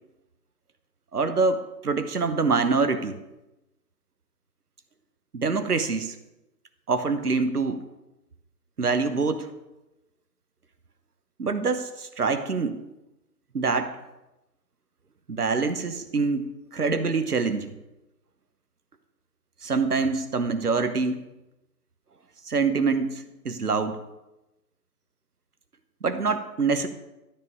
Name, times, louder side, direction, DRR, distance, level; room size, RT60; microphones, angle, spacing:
voice 1, 1.1-3.2 5.3-6.1 6.9-7.8 8.8-9.5 11.4-12.8 13.5-13.9 15.3-17.7 19.6-21.2 22.5-24.0 26.0-26.9, right 4 dB, 65° right, 10 dB, 1.0 m, -25 dB
12.0 x 5.4 x 5.4 m, 0.96 s
figure-of-eight pair, 165°, 50 cm